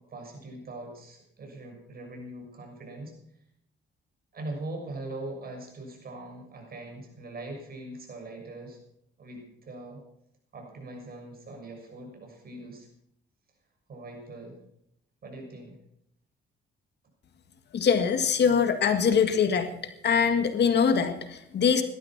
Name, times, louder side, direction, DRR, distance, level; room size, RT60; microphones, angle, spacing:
voice 1, 0.1-3.1 4.3-8.8 9.2-10.0 10.5-12.9 13.9-14.6 15.2-15.8, right 2 dB, 50° right, 2 dB, 6.7 m, -41 dB
voice 2, 17.7-19.7 20.0-21.8, left 6 dB, 60° left, 8 dB, 1.9 m, -23 dB
17.5 x 13.0 x 6.0 m, 0.75 s
cardioid pair, 90°, 20 cm